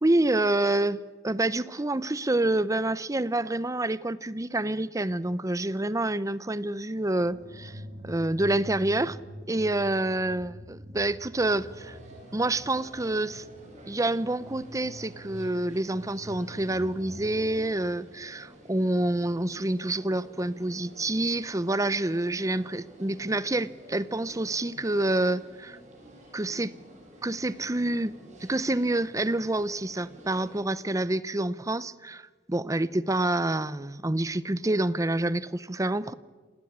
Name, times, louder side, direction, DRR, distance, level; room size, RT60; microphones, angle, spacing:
voice 1, 0.0-9.2 9.5-12.0 12.3-13.4 13.9-25.8 26.3-26.7 27.2-28.1 28.4-36.1, right 2 dB, 15° right, 17 dB, 0.7 m, -27 dB
sound 1, 7.1-17.6, equal, 70° right, 5.7 m, -45 dB
sound 2, 11.5-30.6, right 1 dB, 40° right, 6.5 m, -51 dB
27.0 x 18.5 x 8.7 m, 1.4 s
head